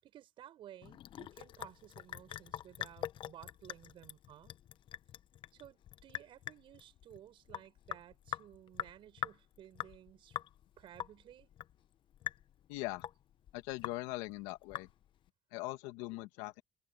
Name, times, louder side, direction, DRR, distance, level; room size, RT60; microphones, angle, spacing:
voice 1, 0.0-4.6 5.5-10.4 10.8-11.5, right 11 dB, 70° right, 7.0 m, -56 dB
Sink (filling or washing) / Drip, 0.8-15.3, left 11 dB, 65° left, 0.9 m, -45 dB
voice 2, 12.7-13.0 13.5-14.9 15.5-16.6, left 20 dB, 90° left, 1.8 m, -41 dB
supercardioid pair, 55°, 9 cm